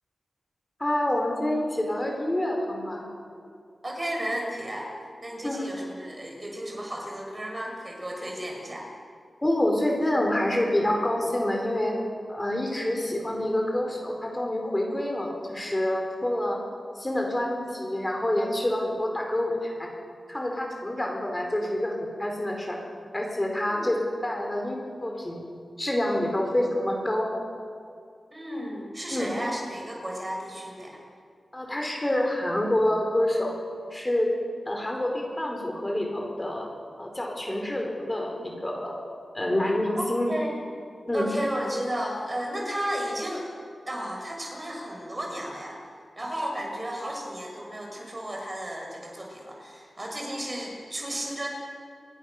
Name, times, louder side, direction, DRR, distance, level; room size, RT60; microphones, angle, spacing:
voice 1, 0.8-3.0 5.4-5.7 9.4-12.0 12.3-16.6 16.9-19.9 20.3-22.8 23.1-25.4 25.8-27.3 29.1-29.3 31.5-33.5 33.9-34.3 34.7-36.7 37.0-39.0 39.3-40.3 41.1-41.3, left 1 dB, 20° left, 1 dB, 4.9 m, -27 dB
voice 2, 3.8-4.9 5.2-8.9 23.7-23.9 28.3-31.0 40.3-40.6 41.1-43.5 43.9-45.8 46.2-51.5, equal, 25° right, 0 dB, 6.9 m, -33 dB
28.5 x 23.0 x 6.9 m, 2.4 s
wide cardioid pair, 100°, 0 cm